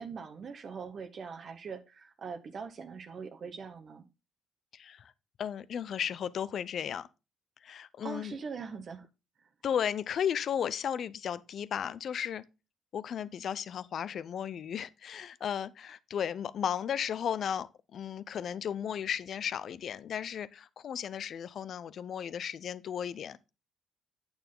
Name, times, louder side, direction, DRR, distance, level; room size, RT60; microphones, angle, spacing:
voice 1, 0.0-4.0 8.0-9.0, right 5 dB, 50° right, 1.0 m, -42 dB
voice 2, 4.7-5.1 5.4-7.1 7.6-8.4 9.6-12.4 12.9-23.4, left 8 dB, 60° left, 0.6 m, -35 dB
8.7 x 7.0 x 3.8 m
cardioid pair, 90°, 0 cm